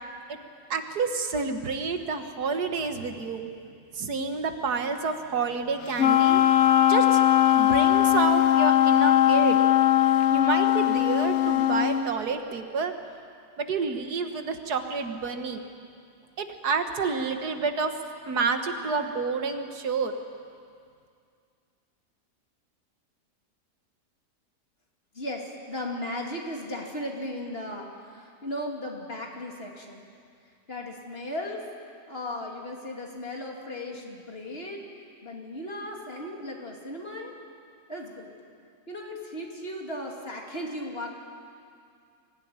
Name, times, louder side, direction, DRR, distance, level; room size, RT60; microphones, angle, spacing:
voice 1, 0.7-3.5 3.9-7.2 7.5-9.6 10.3-12.9 13.6-15.6 16.4-17.9 18.3-20.1, right 5 dB, 75° right, 6 dB, 1.9 m, -29 dB
Wind instrument woodwind instrument, 5.9-12.1, left 12 dB, 60° left, 0.8 m, -20 dB
voice 2, 25.1-30.1 30.7-31.6 32.1-34.8 35.2-37.3 37.9-38.3 38.9-41.1, left 1 dB, 35° left, 0 dB, 2.9 m, -36 dB
24.0 x 16.0 x 9.5 m, 2.3 s
omnidirectional pair, 1.7 m